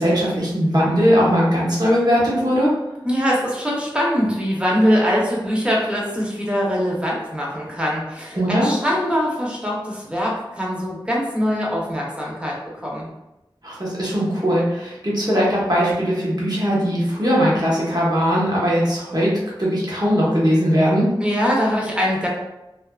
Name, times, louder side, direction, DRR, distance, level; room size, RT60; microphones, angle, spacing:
voice 1, 0.0-2.7 8.4-8.7 13.6-19.3 19.6-21.1, equal, 45° right, -6 dB, 0.9 m, -19 dB
voice 2, 3.0-12.5 12.8-13.1 21.2-22.3, equal, 10° right, -4 dB, 0.7 m, -22 dB
2.6 x 2.4 x 2.3 m, 0.96 s
wide cardioid pair, 40°, 9 cm